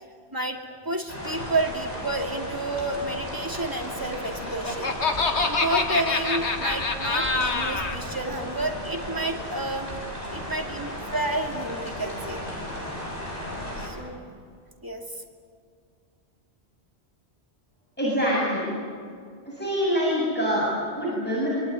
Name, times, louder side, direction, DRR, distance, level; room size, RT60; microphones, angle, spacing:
voice 1, 0.3-4.9 5.4-12.4 13.8-14.2 14.8-15.2, right 2 dB, 20° right, 2 dB, 2.7 m, -30 dB
sound 1, 1.1-13.9, equal, 35° left, 8.0 m, -35 dB
Laughter, 4.2-8.0, left 3 dB, 80° left, 2.1 m, -26 dB
voice 2, 18.0-18.7 19.4-21.5, equal, 10° left, -7 dB, 7.7 m, -25 dB
25.5 x 23.5 x 9.7 m, 2.2 s
omnidirectional pair, 1.1 m